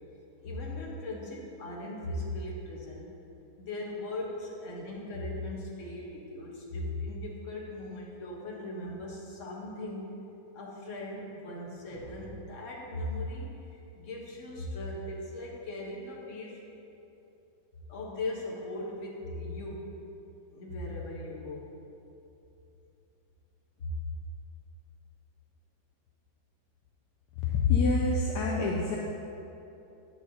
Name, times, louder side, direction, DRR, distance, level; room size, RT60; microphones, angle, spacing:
voice 1, 0.4-3.1 3.6-10.1 10.5-13.5 14.0-16.6 17.9-19.9 20.5-21.7 23.8-23.9, left 1 dB, 45° left, -3 dB, 1.3 m, -38 dB
voice 2, 27.4-29.0, left 4 dB, 75° left, -2 dB, 1.0 m, -26 dB
9.5 x 6.2 x 2.8 m, 2.9 s
omnidirectional pair, 2.2 m